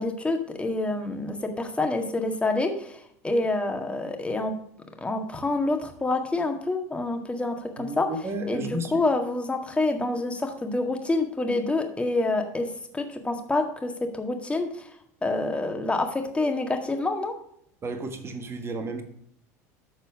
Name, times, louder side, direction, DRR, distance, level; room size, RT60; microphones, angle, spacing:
voice 1, 0.0-4.5 5.0-8.1 8.5-8.7 8.9-12.7 12.9-14.9 15.2-17.3, left 2 dB, 15° left, 4 dB, 1.9 m, -27 dB
voice 2, 7.8-9.0 17.8-19.0, right 2 dB, 30° right, 7 dB, 1.5 m, -33 dB
13.0 x 4.3 x 4.8 m, 0.70 s
hypercardioid pair, 80°, 8 cm